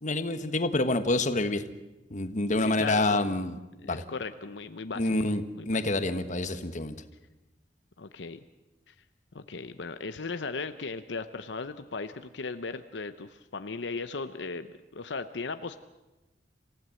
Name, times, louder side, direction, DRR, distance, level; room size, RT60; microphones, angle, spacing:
voice 1, 0.0-1.6 2.1-3.5 3.8-4.0 4.9-6.9, left 2 dB, 45° left, 10 dB, 1.3 m, -27 dB
voice 2, 2.6-3.4 3.8-5.8 8.0-8.4 8.9-9.0 9.3-14.7 14.9-15.8, left 4 dB, 75° left, 10 dB, 0.8 m, -37 dB
28.0 x 15.5 x 7.7 m, 1.1 s
head